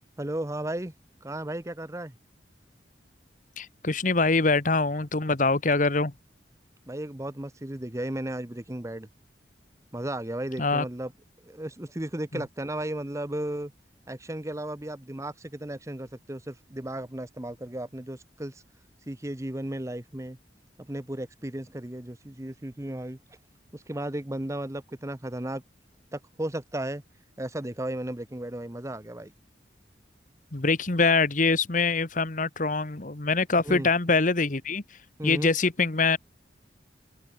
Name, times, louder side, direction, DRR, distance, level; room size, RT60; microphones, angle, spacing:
voice 1, 0.2-0.9 1.2-2.1 6.9-9.1 9.9-11.1 11.4-13.7 14.1-18.6 19.1-20.4 20.9-23.2 23.7-25.6 26.1-27.0 27.4-29.3 33.6-33.9 35.2-35.5, right 1 dB, 15° right, 1.0 m, -34 dB
voice 2, 3.6-6.1 10.6-10.8 12.3-12.4 30.5-34.8 35.2-36.2, left 3 dB, 45° left, 1.4 m, -24 dB
open air
head